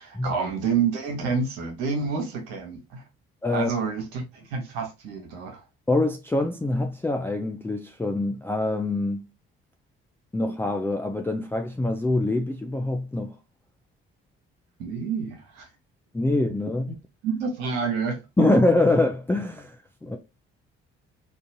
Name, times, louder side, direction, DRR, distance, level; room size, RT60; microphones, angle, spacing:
voice 1, 0.0-3.0 3.5-5.6 14.8-15.7 16.9-17.0 17.2-18.5, right 5 dB, 75° right, 1.1 m, -28 dB
voice 2, 3.4-3.7 5.9-9.2 10.3-13.3 16.1-16.9 18.4-20.2, left 2 dB, 5° left, 0.4 m, -24 dB
3.8 x 2.4 x 2.6 m
hypercardioid pair, 45°, 30 cm